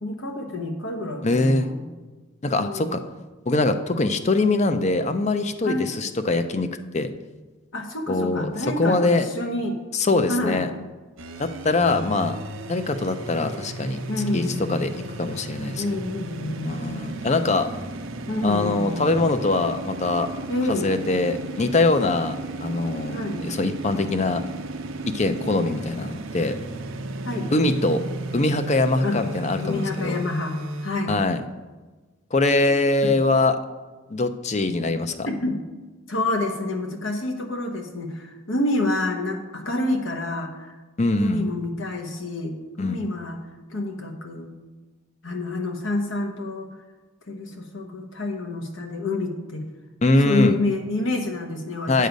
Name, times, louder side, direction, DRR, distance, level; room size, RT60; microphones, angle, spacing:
voice 1, 0.0-1.9 2.6-3.1 5.6-5.9 7.7-9.8 10.3-10.7 11.7-12.0 14.1-14.9 15.8-16.9 18.3-19.1 20.5-21.0 23.1-23.5 27.2-27.5 29.0-29.2 29.6-30.5 30.8-31.2 33.0-33.1 35.3-35.6 36.1-40.7 41.2-43.4 43.7-44.5 45.2-46.7 47.3-49.7 50.2-52.1, left 2 dB, 75° left, 3 dB, 1.2 m, -28 dB
voice 2, 1.2-1.7 2.4-3.0 3.5-6.7 6.9-7.1 8.1-8.5 8.8-9.3 9.9-10.7 11.4-12.4 12.7-14.0 14.3-14.4 14.7-15.8 16.6-17.7 18.4-20.3 20.7-24.4 25.1-26.6 27.5-28.0 28.3-30.2 31.1-31.4 32.3-33.6 34.1-35.3 41.0-41.4 42.8-43.0 50.0-50.6 51.9-52.1, left 2 dB, 35° left, 10 dB, 0.5 m, -23 dB
sound 1, 11.2-30.9, right 2 dB, 85° right, 0.8 m, -34 dB
9.1 x 6.6 x 5.2 m, 1.3 s
head